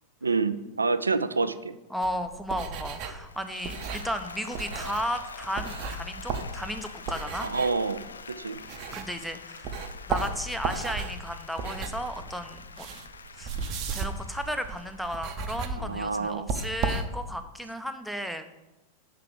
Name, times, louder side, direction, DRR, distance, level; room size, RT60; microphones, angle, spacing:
voice 1, 0.2-1.7 7.4-8.0 8.3-8.6 15.8-16.5, right 4 dB, 80° right, 13 dB, 0.4 m, -27 dB
voice 2, 1.9-7.5 8.9-9.7 10.1-12.9 13.3-13.5 13.9-18.4, equal, ahead, 7 dB, 0.7 m, -34 dB
sound 1, 2.0-9.3 9.6-17.5, right 4 dB, 40° right, 0.7 m, -35 dB
Applause, 3.1-16.3, left 5 dB, 70° left, 0.4 m, -46 dB
5.8 x 4.8 x 6.6 m, 1.0 s
figure-of-eight pair, 90°, 0 cm